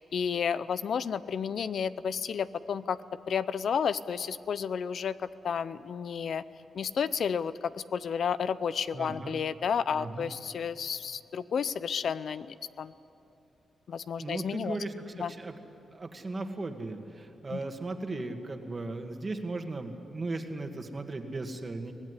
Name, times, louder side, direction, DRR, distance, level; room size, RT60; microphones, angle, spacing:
voice 1, 0.0-3.0 3.3-5.2 5.4-6.4 6.7-12.9 13.9-14.8 15.2-15.3 17.5-17.6, left 7 dB, 65° left, 15 dB, 0.6 m, -31 dB
voice 2, 8.9-9.4 9.9-10.3 14.2-15.5 15.9-21.9, right 2 dB, 30° right, 5 dB, 2.0 m, -37 dB
24.0 x 18.0 x 9.9 m, 2.7 s
cardioid pair, 110°, 0 cm